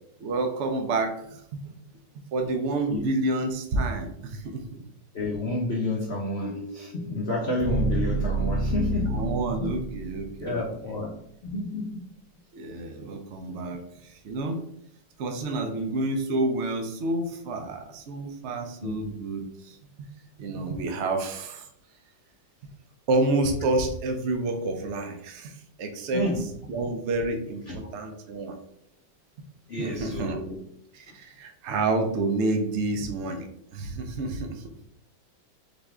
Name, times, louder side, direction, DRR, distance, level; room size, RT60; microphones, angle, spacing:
voice 1, 0.2-1.7 2.3-4.6 9.1-11.0 12.5-14.6 15.2-20.1 20.4-21.7 23.1-26.3 26.7-28.6 29.8-30.4 30.9-34.7, right 2 dB, 70° right, 5 dB, 0.6 m, -29 dB
voice 2, 5.1-9.2 9.6-9.7 10.4-11.1 11.4-12.0 18.8-19.1 26.1-26.4 27.7-27.8 29.7-30.6, left 1 dB, 85° left, -2 dB, 0.5 m, -30 dB
sound 1, 6.4-10.5, right 2 dB, 40° left, 0.9 m, -29 dB
4.0 x 3.4 x 3.6 m, 0.72 s
omnidirectional pair, 2.0 m